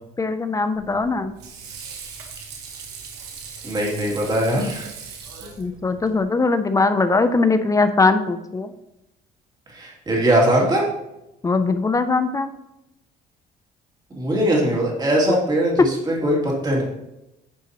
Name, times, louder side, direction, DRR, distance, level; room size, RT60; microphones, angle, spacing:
voice 1, 0.2-1.3 5.6-8.7 11.4-12.5 15.3-15.4 15.8-15.9, left 3 dB, 20° left, 10 dB, 0.5 m, -20 dB
Water / Sink (filling or washing), 0.7-6.2, right 6 dB, 90° right, 1.5 m, -39 dB
voice 2, 3.6-4.9 9.7-10.8 14.1-16.8, right 1 dB, 25° right, -3 dB, 2.7 m, -21 dB
10.0 x 5.6 x 3.0 m, 0.90 s
cardioid pair, 110°, 17 cm